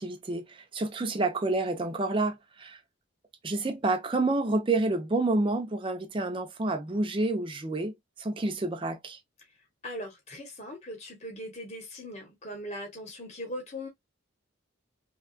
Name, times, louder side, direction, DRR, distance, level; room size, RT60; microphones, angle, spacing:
voice 1, 0.0-2.8 3.4-9.2, right 2 dB, 25° right, 0.4 m, -29 dB
voice 2, 9.8-13.9, equal, 30° left, 1.0 m, -40 dB
2.8 x 2.2 x 2.4 m
head